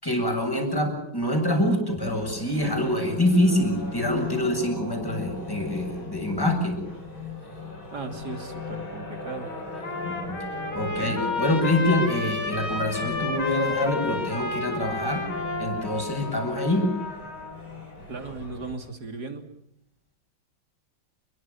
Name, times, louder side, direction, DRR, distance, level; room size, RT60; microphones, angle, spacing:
voice 1, 0.0-6.8 10.0-10.4 10.7-15.2 15.6-16.9, left 1 dB, 10° left, 4 dB, 7.9 m, -25 dB
sound 1, 2.0-18.7, left 4 dB, 45° left, 8.2 m, -39 dB
voice 2, 7.9-9.5 18.1-19.5, right 4 dB, 50° right, 7 dB, 3.5 m, -36 dB
Trumpet, 9.1-17.5, left 3 dB, 80° left, 4.9 m, -32 dB
29.0 x 23.0 x 7.2 m, 0.78 s
omnidirectional pair, 2.2 m